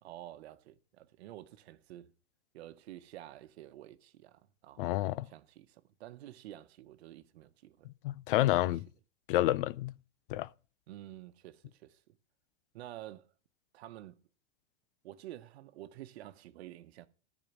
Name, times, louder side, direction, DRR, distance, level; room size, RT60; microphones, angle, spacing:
voice 1, 0.0-2.1 2.5-7.9 8.6-8.7 10.9-12.2 12.7-13.3 13.7-14.2 15.0-17.1, right 14 dB, 70° right, 1.1 m, -50 dB
voice 2, 4.8-5.3 8.0-8.8 9.3-9.9 10.3-10.5, left 15 dB, 55° left, 0.4 m, -29 dB
14.0 x 5.0 x 7.2 m
supercardioid pair, 160°, 34 cm